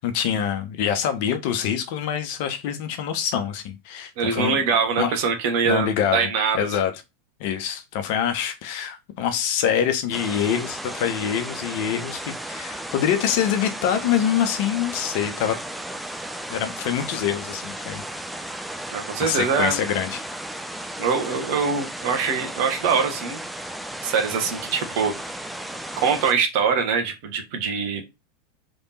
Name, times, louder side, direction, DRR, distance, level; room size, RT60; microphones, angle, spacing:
voice 1, 0.0-4.6 5.0-5.2 5.7-6.3 6.5-6.9 7.4-15.6 16.5-18.0 19.2-20.2, left 9 dB, 55° left, 0.9 m, -25 dB
voice 2, 4.2-6.7 18.9-19.8 21.0-23.4 24.0-25.3 26.0-28.0, right 5 dB, 55° right, 1.2 m, -23 dB
sound 1, 10.1-26.3, right 1 dB, 5° right, 0.5 m, -34 dB
3.5 x 3.4 x 4.1 m
figure-of-eight pair, 85°, 0 cm